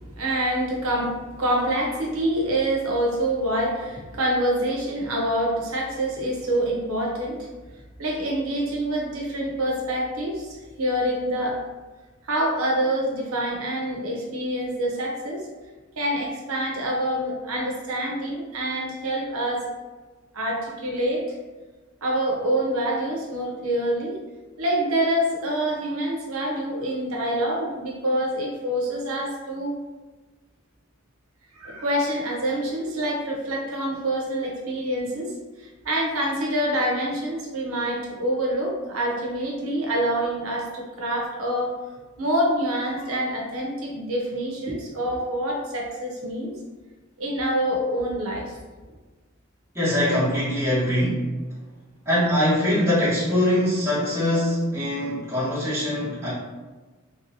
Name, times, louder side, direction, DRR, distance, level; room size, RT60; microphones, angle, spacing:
voice 1, 0.2-7.5 8.0-11.6 12.2-15.5 16.0-19.6 20.3-21.3 22.0-24.2 24.6-29.7 31.5-41.7 42.2-46.6 47.2-48.5, right 1 dB, 85° right, -2 dB, 0.9 m, -26 dB
voice 2, 49.7-51.2 52.0-56.3, left 1 dB, 15° right, -11 dB, 1.2 m, -22 dB
3.4 x 3.0 x 2.7 m, 1.3 s
head